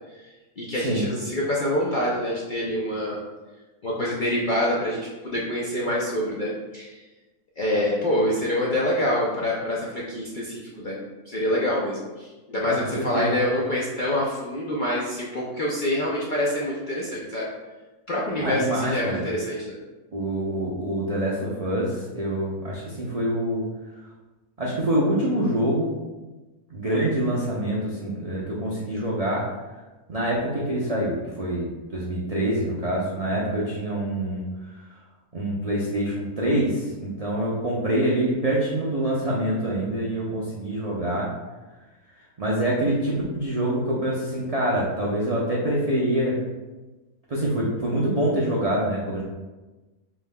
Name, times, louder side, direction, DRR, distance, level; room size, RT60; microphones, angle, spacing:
voice 1, 0.1-3.2 3.8-6.9 7.6-11.0 11.3-17.5 18.1-19.8, left 1 dB, 55° left, -5 dB, 0.5 m, -26 dB
voice 2, 18.4-19.2 20.1-23.7 24.6-25.9 26.7-29.5 30.1-34.5 35.3-41.3 42.4-46.4 47.3-49.2, right 1 dB, 55° right, -5 dB, 0.4 m, -25 dB
5.4 x 3.3 x 2.2 m, 1.2 s
omnidirectional pair, 1.5 m